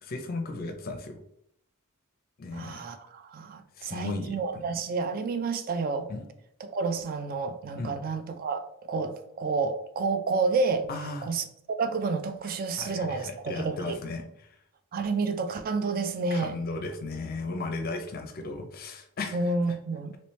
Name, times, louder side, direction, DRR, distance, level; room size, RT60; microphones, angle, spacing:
voice 1, 0.0-1.2 2.4-2.8 3.8-4.6 6.1-6.2 7.8-7.9 10.9-11.3 12.8-14.6 16.3-19.5, left 3 dB, 45° left, 0.5 m, -35 dB
voice 2, 2.5-6.1 6.6-10.9 11.2-14.0 14.9-16.6 19.3-20.1, right 4 dB, 40° right, 0.4 m, -30 dB
3.1 x 3.0 x 3.1 m
head